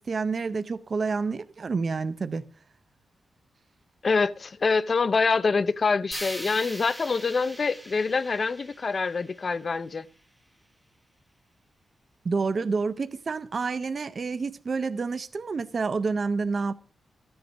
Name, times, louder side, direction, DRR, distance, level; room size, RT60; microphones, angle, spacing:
voice 1, 0.0-2.4 12.2-16.7, right 4 dB, 35° right, 0.5 m, -28 dB
voice 2, 4.0-10.1, left 4 dB, 35° left, 0.5 m, -25 dB
sound 1, 6.1-10.2, equal, ahead, 1.1 m, -42 dB
14.0 x 7.9 x 6.2 m
wide cardioid pair, 175°, 0 cm